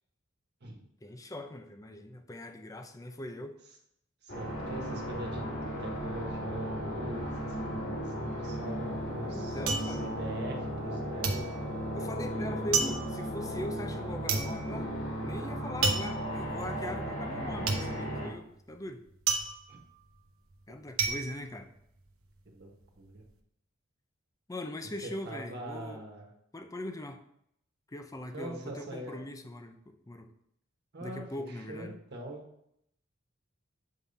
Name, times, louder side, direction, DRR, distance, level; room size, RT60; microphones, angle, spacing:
voice 1, 1.0-3.6 9.2-10.0 11.9-14.9 15.2-19.0 20.7-21.7 24.5-26.0 26.5-27.2 27.9-30.3 31.0-32.0, left 1 dB, 15° left, 6 dB, 0.5 m, -41 dB
voice 2, 4.2-7.3 7.6-11.6 19.7-19.8 22.4-22.7 23.0-23.2 25.0-26.3 28.3-29.2 30.9-32.4, right 1 dB, 55° right, 0 dB, 1.4 m, -43 dB
sound 1, 4.3-18.3, equal, 70° left, 2.0 m, -36 dB
sound 2, 8.5-10.9 11.2-22.3 22.7-23.3, right 4 dB, 85° right, 0.9 m, -33 dB
7.4 x 3.6 x 4.0 m, 0.73 s
head